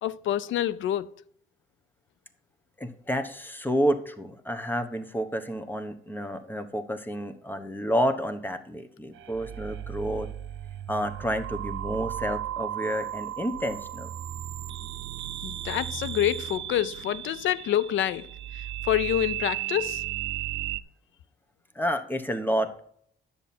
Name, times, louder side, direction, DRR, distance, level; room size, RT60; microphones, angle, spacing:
voice 1, 0.0-1.1 15.4-20.1, left 12 dB, 75° left, 0.5 m, -27 dB
voice 2, 2.8-10.3 10.9-14.1 21.7-22.8, equal, 10° left, 1.1 m, -30 dB
sound 1, 9.2-20.8, right 13 dB, 70° right, 0.6 m, -35 dB
10.0 x 7.1 x 4.3 m
cardioid pair, 90°, 20 cm